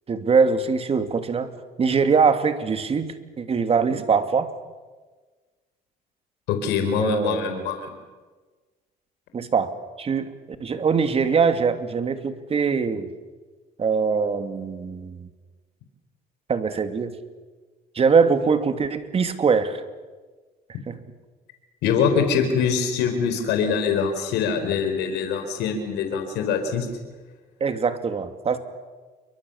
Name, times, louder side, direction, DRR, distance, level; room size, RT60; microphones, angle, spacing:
voice 1, 0.1-1.5 1.8-4.5 7.0-7.7 9.3-9.7 10.0-10.3 10.6-13.1 13.8-15.3 16.5-17.1 17.9-19.8 20.9-21.0 27.6-28.6, right 5 dB, 35° right, 8 dB, 2.6 m, -22 dB
voice 2, 6.5-7.9 21.8-26.9, left 6 dB, 90° left, 6 dB, 4.5 m, -24 dB
29.0 x 24.0 x 7.2 m, 1.3 s
cardioid pair, 110°, 17 cm